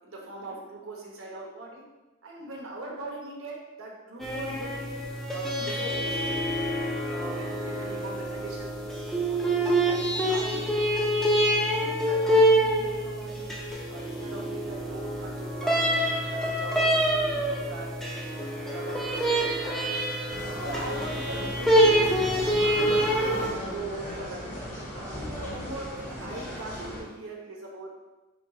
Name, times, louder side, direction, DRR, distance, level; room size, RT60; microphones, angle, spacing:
voice 1, 0.0-1.8 2.2-4.9 5.3-6.6 7.0-10.8 11.4-13.5 13.9-15.9 16.3-17.9 18.2-20.0 20.5-22.7 23.3-24.6 25.1-27.9, right 2 dB, 85° right, -2 dB, 0.9 m, -41 dB
sound 1, 4.2-23.5, equal, ahead, 0.4 m, -26 dB
sound 2, 20.3-27.0, equal, 35° left, 1.2 m, -36 dB
4.3 x 2.4 x 3.7 m, 1.1 s
head